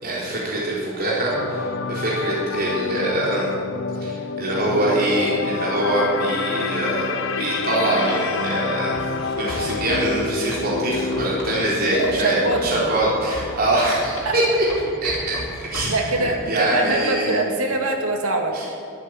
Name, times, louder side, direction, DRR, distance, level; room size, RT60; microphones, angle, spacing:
voice 1, 0.0-3.5 4.0-9.0 9.4-14.6 15.0-15.3 15.7-17.4 18.5-18.7, right 1 dB, 45° right, -6 dB, 4.0 m, -23 dB
sound 1, 1.3-15.5 15.8-16.0, left 4 dB, 60° left, 0.6 m, -29 dB
Writing, 8.9-11.6 12.0-14.4 14.7-16.1, left 1 dB, 90° left, 4.1 m, -36 dB
voice 2, 11.9-12.9 14.2-14.3 15.9-18.6, right 2 dB, 85° right, 3 dB, 2.1 m, -23 dB
14.5 x 9.5 x 9.9 m, 2.4 s
head